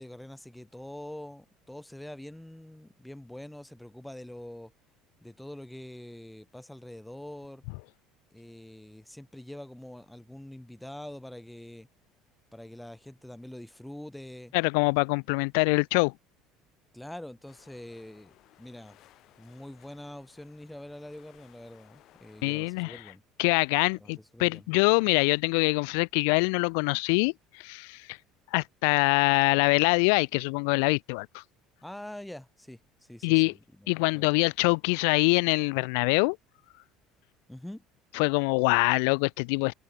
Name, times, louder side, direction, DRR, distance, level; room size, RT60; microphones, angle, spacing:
voice 1, 0.0-4.7 5.2-7.6 8.3-11.9 12.5-14.5 16.9-18.3 18.6-19.0 19.4-23.2 24.0-24.7 31.8-34.3 37.5-37.8, left 1 dB, 5° left, 0.9 m, -44 dB
voice 2, 14.5-16.1 22.4-23.0 23.4-28.2 28.5-31.4 33.2-33.5 33.9-36.4 38.1-39.7, left 36 dB, 90° left, 0.4 m, -24 dB
sound 1, 17.5-22.7, left 14 dB, 40° left, 4.9 m, -60 dB
cardioid pair, 175°, 0 cm